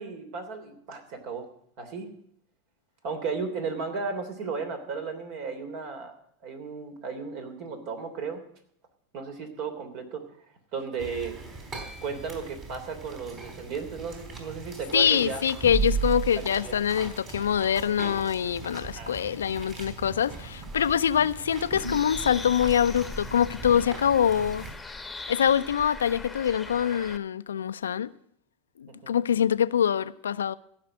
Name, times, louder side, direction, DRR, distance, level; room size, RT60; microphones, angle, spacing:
voice 1, 0.0-1.5 1.8-2.1 3.0-6.1 6.4-8.4 9.1-10.2 10.7-11.3 12.0-15.4 16.4-16.7 19.0-19.1 28.9-29.2, right 5 dB, 55° right, 3.1 m, -35 dB
sound 1, 11.0-24.7, right 5 dB, 35° right, 4.0 m, -37 dB
voice 2, 14.9-24.7 25.3-28.1 28.8-30.6, left 8 dB, 85° left, 0.5 m, -24 dB
Bird, 21.8-27.2, left 3 dB, 10° left, 1.2 m, -40 dB
15.0 x 6.0 x 9.1 m
hypercardioid pair, 95°, 0 cm